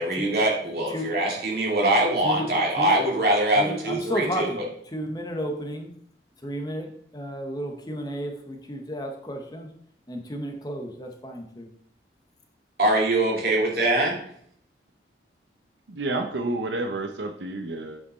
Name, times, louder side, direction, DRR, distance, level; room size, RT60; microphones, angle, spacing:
voice 1, 0.0-4.7 12.8-14.2, right 1 dB, 55° right, -2 dB, 2.5 m, -23 dB
voice 2, 3.6-4.6 4.9-5.9 6.4-9.7 10.1-11.7, equal, 20° left, 3 dB, 0.9 m, -32 dB
voice 3, 15.9-18.0, right 2 dB, 75° right, 6 dB, 0.7 m, -30 dB
8.2 x 5.3 x 4.1 m, 0.66 s
head